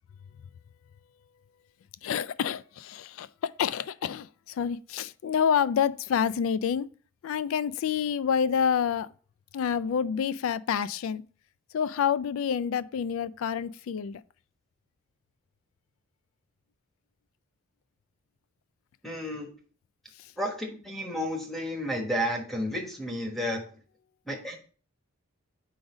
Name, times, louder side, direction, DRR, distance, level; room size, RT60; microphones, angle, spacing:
voice 1, 2.0-6.9 7.2-9.1 9.5-11.2 11.7-14.2, left 7 dB, 70° left, 0.3 m, -28 dB
voice 2, 19.0-19.5 20.4-23.6 24.3-24.6, equal, ahead, 1.1 m, -32 dB
4.9 x 3.9 x 4.9 m
head